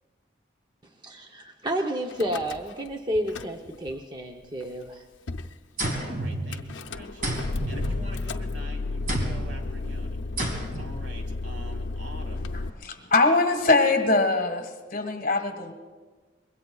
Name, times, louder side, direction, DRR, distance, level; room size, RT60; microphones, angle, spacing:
voice 1, 1.0-5.0, equal, 25° right, 2 dB, 0.8 m, -31 dB
Car / Engine starting / Idling, 2.1-2.9 3.2-3.9 4.6-4.7 4.9-5.0 5.3-5.6 6.5-12.7, left 3 dB, 80° left, 0.6 m, -33 dB
sound 1, 5.8-6.8 7.2-8.5 9.1-9.6 10.4-11.0, right 1 dB, 45° right, 2.4 m, -31 dB
voice 2, 5.9-10.2 10.5-12.5, equal, 85° right, 3 dB, 2.7 m, -45 dB
voice 3, 12.5-15.7, left 3 dB, 45° left, 6 dB, 1.6 m, -23 dB
25.0 x 21.5 x 2.4 m, 1.4 s
head